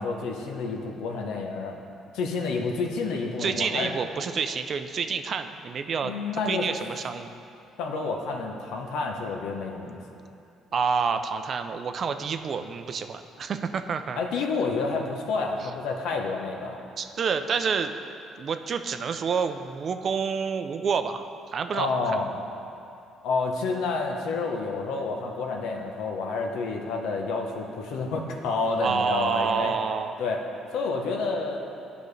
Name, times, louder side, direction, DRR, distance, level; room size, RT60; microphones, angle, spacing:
voice 1, 0.0-1.8 2.1-3.9 6.0-6.7 7.8-10.0 14.2-16.8 21.7-22.4 23.2-29.8 30.2-30.4 30.7-31.6, left 4 dB, 80° left, 2 dB, 0.8 m, -29 dB
voice 2, 3.4-6.1 6.5-7.3 10.7-14.2 15.6-15.7 17.0-17.9 18.4-22.2 28.8-30.1, right 6 dB, 50° right, 8 dB, 0.4 m, -28 dB
11.5 x 5.1 x 3.2 m, 2.7 s
cardioid pair, 85°, 0 cm